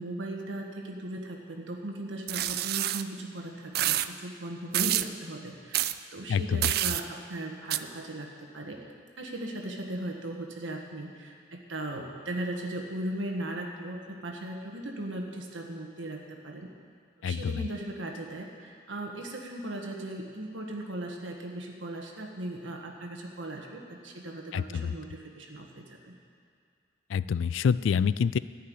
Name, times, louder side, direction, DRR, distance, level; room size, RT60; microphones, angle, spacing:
voice 1, 0.0-8.9 9.2-16.7 17.2-26.1, right 1 dB, 80° right, 1 dB, 1.5 m, -38 dB
sound 1, 2.3-3.0 3.7-4.1 4.7-5.1 5.7-5.9 6.6-7.0 7.7-7.8, right 13 dB, 50° right, 0.3 m, -27 dB
voice 2, 6.3-6.7 17.2-17.6 24.5-24.9 27.1-28.4, left 6 dB, 80° left, 17 dB, 0.3 m, -27 dB
14.0 x 5.6 x 9.7 m, 2.3 s
head